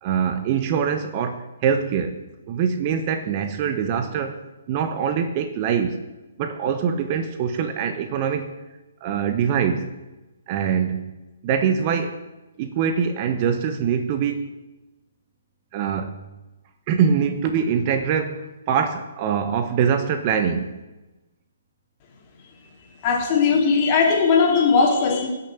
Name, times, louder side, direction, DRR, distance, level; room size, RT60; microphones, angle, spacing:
voice 1, 0.0-2.2 2.5-4.4 4.7-6.0 6.4-8.5 9.0-9.9 10.5-11.1 11.4-12.2 12.6-14.5 15.7-16.2 16.9-20.8, right 7 dB, 35° right, 7 dB, 1.2 m, -23 dB
voice 2, 23.0-25.3, left 5 dB, 30° left, 1 dB, 3.2 m, -18 dB
17.0 x 7.0 x 7.6 m, 1.1 s
figure-of-eight pair, 130°, 0 cm